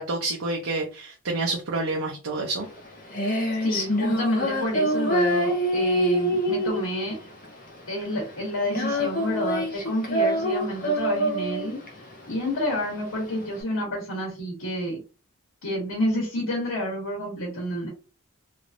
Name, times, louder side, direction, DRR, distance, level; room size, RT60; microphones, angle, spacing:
voice 1, 0.0-2.7, right 2 dB, 80° right, 0 dB, 0.7 m, -28 dB
Female singing, 2.6-13.6, equal, 40° left, 1.0 m, -26 dB
voice 2, 3.6-7.2 7.9-11.8 12.3-15.0 15.6-17.9, equal, 90° left, -3 dB, 1.5 m, -29 dB
3.3 x 3.1 x 2.5 m, 0.34 s
head